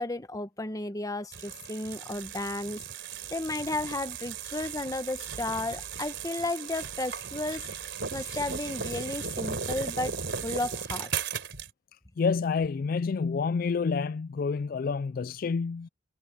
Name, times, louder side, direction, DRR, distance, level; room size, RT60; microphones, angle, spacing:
voice 1, 0.0-2.8 3.3-7.7 8.1-11.1, left 2 dB, 20° left, 1.0 m, -33 dB
sound 1, 1.3-11.7, right 6 dB, 70° right, 3.9 m, -36 dB
voice 2, 12.2-15.9, left 5 dB, 50° left, 0.3 m, -28 dB
head